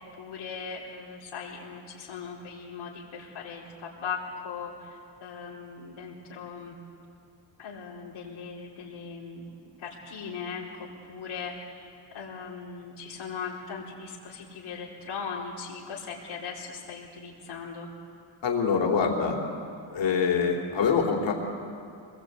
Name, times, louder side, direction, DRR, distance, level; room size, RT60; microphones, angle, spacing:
voice 1, 0.0-6.8 7.6-9.4 9.8-11.9 12.1-17.9, left 5 dB, 90° left, -5 dB, 4.3 m, -39 dB
voice 2, 18.4-19.4 19.9-21.3, left 6 dB, 65° left, 0 dB, 3.7 m, -24 dB
25.5 x 21.0 x 8.4 m, 2.4 s
wide cardioid pair, 165°, 47 cm